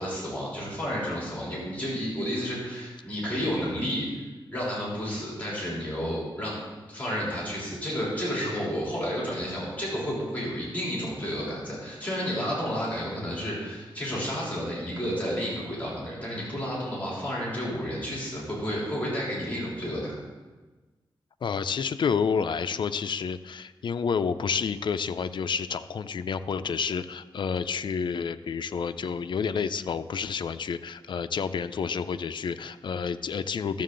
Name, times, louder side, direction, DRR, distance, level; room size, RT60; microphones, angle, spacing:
voice 1, 0.0-4.1 4.5-6.6 6.9-20.1, equal, 15° left, -6 dB, 3.4 m, -31 dB
voice 2, 21.4-33.8, left 6 dB, 65° left, 11 dB, 0.4 m, -29 dB
12.5 x 7.4 x 3.8 m, 1.2 s
wide cardioid pair, 110°, 9 cm